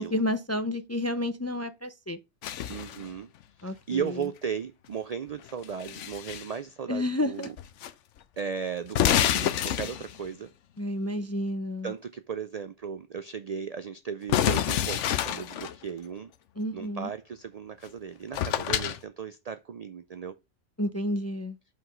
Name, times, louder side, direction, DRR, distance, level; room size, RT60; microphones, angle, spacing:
voice 1, 0.0-2.2 3.6-4.2 6.9-7.5 10.8-11.9 16.6-17.1 20.8-21.6, left 1 dB, 20° left, 0.4 m, -30 dB
sound 1, 2.4-3.1 5.5-6.5 7.4-7.9 8.2-8.3 8.9-10.3 14.3-15.8 17.9-18.0 18.3-19.0, left 10 dB, 75° left, 1.0 m, -27 dB
voice 2, 2.7-3.3 3.6-7.5 8.4-10.5 11.8-16.3 16.7-20.3, right 7 dB, 70° right, 0.3 m, -36 dB
5.8 x 5.3 x 4.9 m
omnidirectional pair, 1.3 m